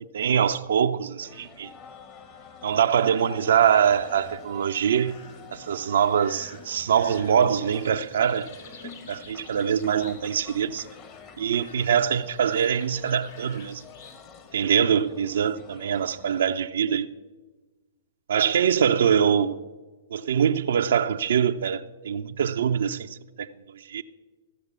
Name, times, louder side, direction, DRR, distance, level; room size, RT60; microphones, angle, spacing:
voice 1, 0.1-1.7 2.6-5.1 5.5-8.5 9.1-10.9 11.4-13.8 14.5-17.1 18.3-19.6 20.1-23.1 23.4-23.5 23.9-24.0, right 8 dB, 65° right, 0.5 m, -23 dB
sound 1, 1.2-16.6, left 6 dB, 30° left, 1.3 m, -48 dB
sound 2, 4.0-4.5 5.0-5.6 6.1-10.5 10.7-11.3 11.6-14.2, left 5 dB, 60° left, 2.3 m, -50 dB
14.5 x 6.5 x 8.0 m
figure-of-eight pair, 115°, 0 cm